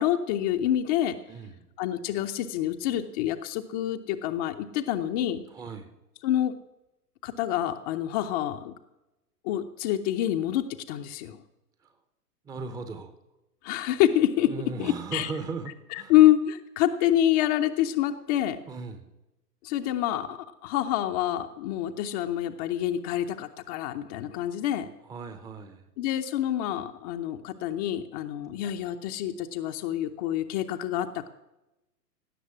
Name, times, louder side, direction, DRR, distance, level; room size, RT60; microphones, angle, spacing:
voice 1, 0.0-1.2 1.8-5.4 6.2-6.5 7.2-8.7 9.4-11.4 13.6-14.5 14.8-15.3 15.9-18.6 19.6-24.9 26.0-31.3, left 12 dB, 25° left, 5 dB, 0.6 m, -27 dB
voice 2, 1.3-1.7 5.5-5.9 12.4-13.1 14.4-16.1 18.7-19.1 25.0-25.9 28.5-28.6, right 4 dB, 10° right, 10 dB, 0.7 m, -37 dB
17.0 x 6.7 x 9.7 m, 0.95 s
figure-of-eight pair, 110°, 48 cm